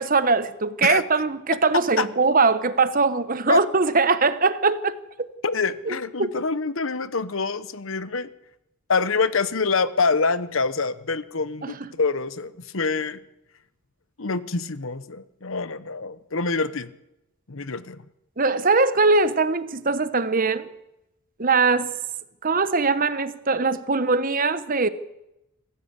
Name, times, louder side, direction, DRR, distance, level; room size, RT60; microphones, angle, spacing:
voice 1, 0.0-5.0 5.9-6.3 11.6-11.9 18.4-20.7 21.4-21.9 22.4-24.9, right 4 dB, 40° right, 1.1 m, -21 dB
voice 2, 5.4-8.3 8.9-13.2 14.2-16.9 17.5-18.0, left 4 dB, 60° left, 1.0 m, -25 dB
26.5 x 15.5 x 8.2 m
head